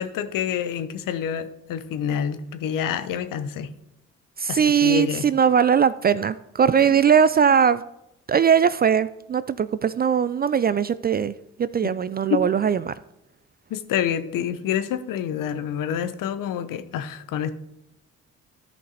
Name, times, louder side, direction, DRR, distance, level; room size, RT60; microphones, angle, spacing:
voice 1, 0.0-3.7 4.5-5.3 6.9-7.0 11.8-12.0 12.3-12.4 13.7-17.5, left 9 dB, 60° left, 0.9 m, -27 dB
voice 2, 4.4-7.8 8.3-11.3 11.6-12.9, right 7 dB, 25° right, 0.4 m, -20 dB
13.5 x 5.3 x 4.0 m
hypercardioid pair, 40°, 37 cm